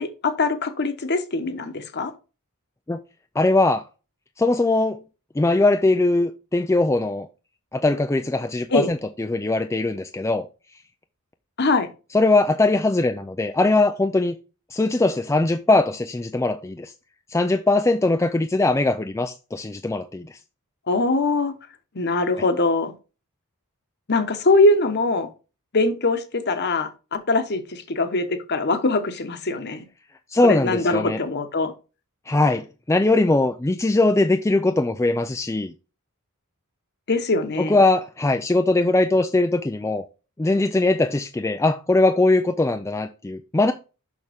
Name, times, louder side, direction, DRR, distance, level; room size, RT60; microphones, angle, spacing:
voice 1, 0.0-2.1 8.7-8.9 11.6-11.9 20.9-21.5 21.9-22.9 24.1-25.3 25.7-29.8 30.4-31.7 37.1-37.8, left 2 dB, 50° left, 1.1 m, -22 dB
voice 2, 3.4-3.8 4.4-5.0 5.4-7.3 7.7-10.5 12.1-14.4 14.7-16.9 17.3-20.3 30.3-31.2 32.3-35.7 37.6-40.1 40.4-43.7, left 2 dB, 15° left, 0.4 m, -20 dB
6.4 x 5.9 x 3.5 m
head